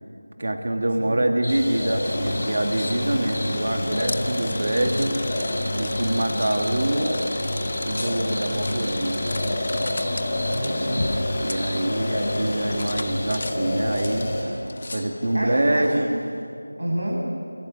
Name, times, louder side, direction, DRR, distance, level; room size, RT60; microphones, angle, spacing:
voice 1, 0.4-5.2 5.8-7.2 7.8-9.2 11.4-14.4 14.9-16.1, right 1 dB, 45° right, 4 dB, 2.6 m, -25 dB
voice 2, 1.0-1.3 10.3-11.1 15.3-16.1 16.8-17.3, right 1 dB, 75° right, -2 dB, 7.9 m, -29 dB
sound 1, 1.4-13.4, left 1 dB, 75° left, 2.8 m, -37 dB
sound 2, 1.5-14.4, left 1 dB, 20° left, 3.9 m, -28 dB
sound 3, 2.0-16.4, left 2 dB, 40° left, 1.1 m, -35 dB
27.0 x 25.0 x 8.4 m, 2.6 s
figure-of-eight pair, 175°, 0 cm